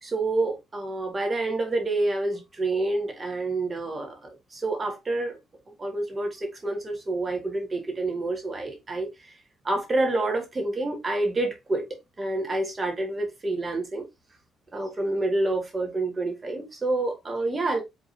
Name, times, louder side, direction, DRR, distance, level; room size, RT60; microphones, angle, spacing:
voice 1, 0.0-4.2 4.5-5.4 5.8-9.1 9.6-11.9 12.2-14.0 14.7-17.8, right 2 dB, 30° right, 1.8 m, -28 dB
5.2 x 3.6 x 2.7 m
cardioid pair, 85°, 0 cm